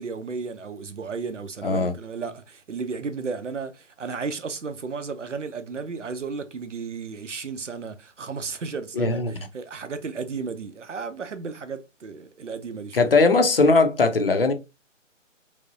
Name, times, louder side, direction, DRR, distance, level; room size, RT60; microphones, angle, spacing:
voice 1, 0.0-13.1, right 5 dB, 65° right, 0.7 m, -34 dB
voice 2, 1.6-1.9 9.0-9.3 12.9-14.5, left 3 dB, 45° left, 0.6 m, -19 dB
3.5 x 3.2 x 2.6 m
figure-of-eight pair, 145°, 39 cm